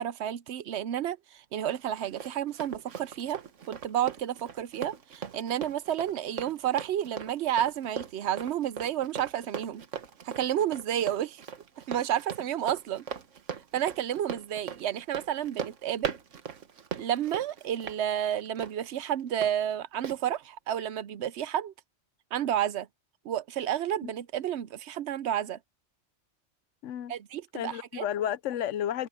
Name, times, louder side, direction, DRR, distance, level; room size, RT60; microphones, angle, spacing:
voice 1, 0.0-3.4 3.7-9.8 10.2-11.4 11.9-13.0 13.7-16.1 17.0-21.7 22.3-22.9 23.2-25.6 27.1-28.1, right 10 dB, 70° right, 0.9 m, -31 dB
Run, 1.7-19.5 20.0-20.2, right 7 dB, 85° right, 1.5 m, -40 dB
voice 2, 26.8-27.1 27.5-29.1, left 10 dB, 90° left, 1.0 m, -32 dB
open air
omnidirectional pair, 1.2 m